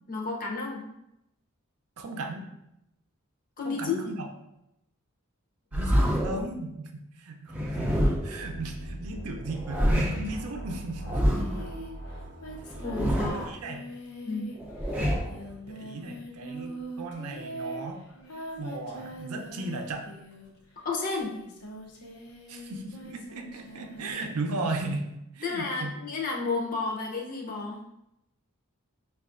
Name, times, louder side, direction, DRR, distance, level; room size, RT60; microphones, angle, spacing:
voice 1, 0.1-0.9 3.6-4.0 12.8-13.5 14.2-14.5 20.8-21.4 25.4-27.8, left 4 dB, 40° left, 0 dB, 0.6 m, -31 dB
voice 2, 2.0-2.5 3.6-4.3 5.7-11.2 13.2-13.8 15.7-18.0 18.6-20.1 22.5-25.1 25.3-25.9, right 2 dB, 80° right, 4 dB, 0.5 m, -36 dB
sound 1, 5.7-6.5 7.5-8.4 9.5-10.3 11.1-11.6 12.7-13.5 14.6-15.4, equal, 5° right, 0.4 m, -27 dB
sound 2, 8.2-13.4, right 1 dB, 60° left, 1.0 m, -41 dB
Singing, 11.3-20.7 21.2-24.1, right 1 dB, 85° left, 0.6 m, -43 dB
5.4 x 2.4 x 2.4 m, 0.85 s
head